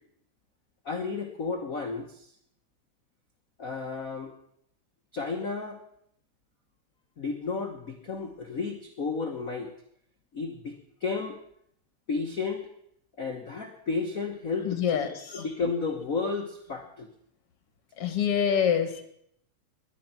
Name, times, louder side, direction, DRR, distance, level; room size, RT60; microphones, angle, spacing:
voice 1, 0.8-2.3 3.6-4.3 5.1-5.8 7.2-9.7 10.3-11.4 12.1-12.7 13.2-17.1, left 4 dB, 85° left, 3 dB, 0.7 m, -32 dB
voice 2, 14.6-15.4 18.0-19.0, left 8 dB, 55° left, 8 dB, 2.2 m, -26 dB
20.0 x 11.0 x 5.8 m, 0.72 s
omnidirectional pair, 3.5 m